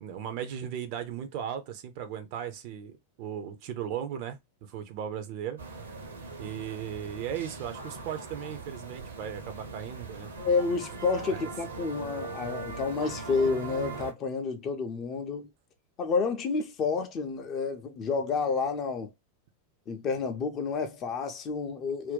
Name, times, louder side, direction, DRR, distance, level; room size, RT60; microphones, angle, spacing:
voice 1, 0.0-5.6 6.4-10.3, right 9 dB, 45° right, 0.6 m, -37 dB
sound 1, 5.6-14.1, right 3 dB, 70° right, 0.8 m, -40 dB
voice 2, 10.4-15.5 16.0-19.1 19.9-22.1, left 4 dB, 30° left, 0.6 m, -30 dB
2.6 x 2.2 x 3.5 m
figure-of-eight pair, 90°, 0 cm